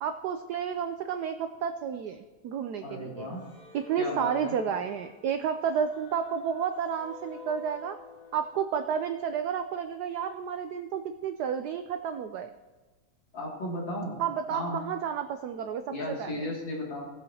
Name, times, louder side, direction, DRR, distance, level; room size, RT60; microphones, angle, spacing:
voice 1, 0.0-3.3 3.7-8.0 8.3-12.5 14.2-15.8 16.2-16.5, right 7 dB, 80° right, 8 dB, 0.9 m, -31 dB
voice 2, 2.8-3.4 4.0-4.6 13.3-14.2 14.5-14.8 15.9-17.0, left 1 dB, 65° left, -4 dB, 3.2 m, -35 dB
sound 1, 3.3-8.6, left 4 dB, 30° left, 1.8 m, -50 dB
18.5 x 7.6 x 2.8 m, 1.3 s
omnidirectional pair, 2.3 m